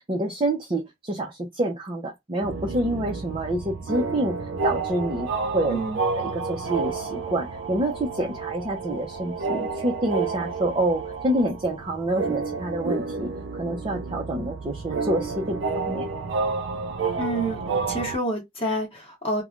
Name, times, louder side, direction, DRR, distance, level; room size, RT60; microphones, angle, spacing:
voice 1, 0.0-4.4 4.6-5.8 6.2-16.1, right 1 dB, 30° right, 0.6 m, -27 dB
sound 1, 2.4-18.2, right 4 dB, 90° right, 0.4 m, -30 dB
voice 2, 5.7-6.0 17.2-19.4, right 1 dB, 30° left, 1.1 m, -28 dB
3.1 x 2.2 x 2.5 m
head